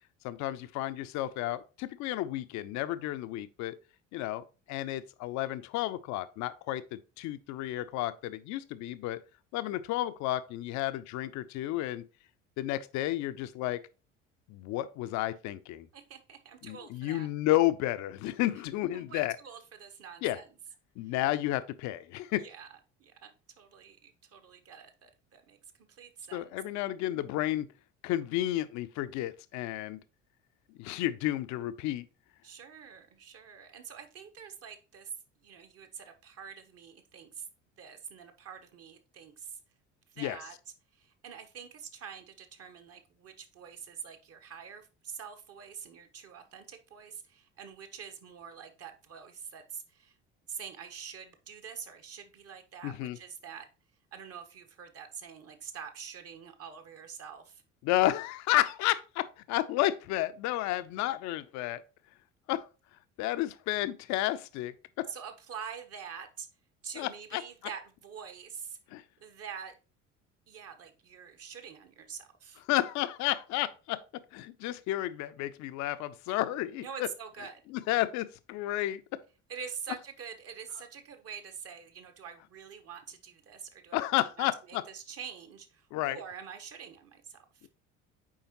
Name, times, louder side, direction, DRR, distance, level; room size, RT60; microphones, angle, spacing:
voice 1, 0.2-3.8 4.1-9.2 9.5-12.1 12.6-13.8 14.5-15.9 16.6-19.4 20.2-20.4 21.0-22.4 26.3-27.7 28.0-30.0 30.8-32.1 40.2-40.4 52.8-53.2 57.8-61.8 62.5-62.7 63.2-65.1 67.0-67.4 68.9-69.0 72.7-77.1 77.7-79.2 83.9-84.8 85.9-86.2, left 15 dB, 50° left, 0.6 m, -32 dB
voice 2, 15.9-17.3 18.9-20.5 22.4-22.7 23.0-23.3 23.6-25.6 25.9-26.5 32.4-35.1 35.4-37.5 37.8-39.6 40.1-40.5 41.0-50.1 50.5-53.7 54.1-57.6 65.1-66.5 66.8-68.8 69.2-69.7 70.5-72.6 76.8-77.6 79.5-87.7, right 7 dB, 40° right, 1.2 m, -46 dB
7.2 x 4.9 x 2.9 m
figure-of-eight pair, 60°, 38 cm